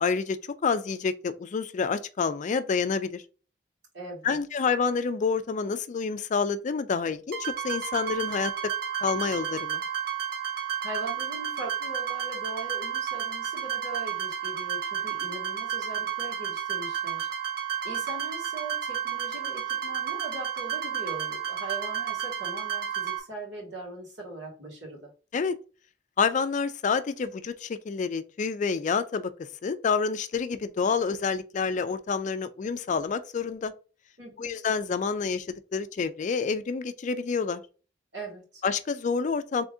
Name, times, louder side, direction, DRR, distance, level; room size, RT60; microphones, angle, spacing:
voice 1, 0.0-3.2 4.2-8.7 9.0-9.8 25.3-25.6 26.2-29.3 29.6-33.7 34.4-37.6 38.6-39.6, left 5 dB, 45° left, 0.4 m, -28 dB
voice 2, 3.9-4.4 10.8-17.3 17.8-25.1 34.2-34.5 38.1-38.6, right 1 dB, 90° right, 2.2 m, -40 dB
sound 1, 7.3-23.2, right 9 dB, 60° right, 1.0 m, -32 dB
3.6 x 3.5 x 2.6 m
head